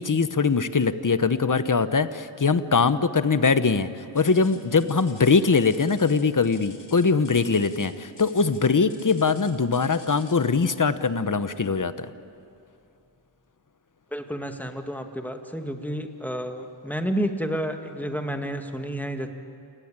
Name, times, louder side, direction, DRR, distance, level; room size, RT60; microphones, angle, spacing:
voice 1, 0.0-3.9 4.1-12.1, left 4 dB, 45° left, 12 dB, 1.0 m, -22 dB
sound 1, 4.2-10.5 11.5-11.8 12.3-12.4 13.1-13.2, left 3 dB, 65° left, 3.9 m, -49 dB
voice 2, 14.1-19.3, equal, 5° left, 5 dB, 2.2 m, -30 dB
29.0 x 18.0 x 8.9 m, 2.7 s
wide cardioid pair, 65°, 45 cm